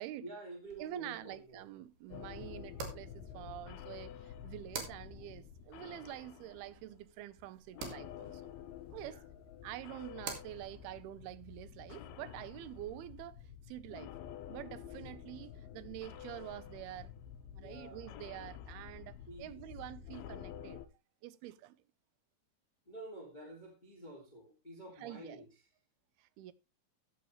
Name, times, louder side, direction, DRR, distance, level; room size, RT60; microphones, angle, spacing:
voice 1, 0.2-1.6 9.0-9.2 17.6-18.2 19.3-19.6 22.8-25.4, right 1 dB, 15° left, 1.7 m, -49 dB
sound 1, 0.7-13.5, right 5 dB, 65° right, 3.7 m, -51 dB
voice 2, 0.8-8.5 8.9-9.2 9.6-13.4 13.7-14.1 14.5-17.1 17.5-20.8 21.2-21.8 25.0-25.4 26.2-26.5, right 14 dB, 90° right, 2.7 m, -47 dB
sound 2, 2.1-7.4 7.7-20.9, left 9 dB, 85° left, 2.7 m, -50 dB
14.0 x 9.5 x 3.1 m
omnidirectional pair, 4.4 m